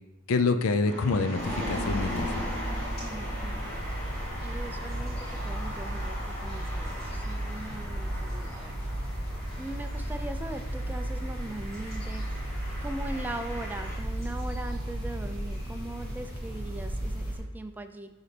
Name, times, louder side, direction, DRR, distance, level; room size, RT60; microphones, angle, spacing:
voice 1, 0.3-2.4, left 4 dB, 70° left, 8 dB, 0.5 m, -26 dB
sound 1, 0.8-14.0, equal, 15° left, 1.8 m, -39 dB
sound 2, 1.4-17.4, right 1 dB, 45° left, 2.5 m, -34 dB
voice 2, 3.0-3.8 4.4-9.0 9.6-12.5 12.8-18.1, right 1 dB, 10° right, 6 dB, 0.4 m, -40 dB
10.5 x 4.0 x 3.3 m, 1.1 s
head